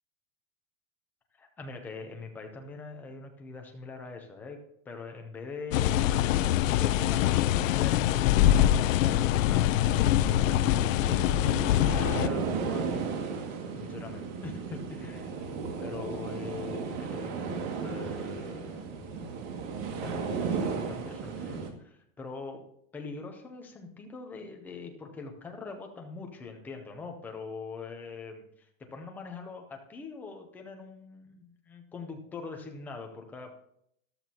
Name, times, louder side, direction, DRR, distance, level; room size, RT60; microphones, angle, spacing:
voice 1, 1.4-4.6 4.9-13.1 13.8-15.5 15.8-18.9 20.0-22.6 22.9-33.6, left 4 dB, 5° left, 3 dB, 0.4 m, -43 dB
sound 1, 5.7-12.3, left 12 dB, 65° left, 0.6 m, -24 dB
sound 2, 9.9-21.7, right 5 dB, 40° right, 1.9 m, -35 dB
13.5 x 12.0 x 2.8 m, 0.70 s
supercardioid pair, 160°, 43 cm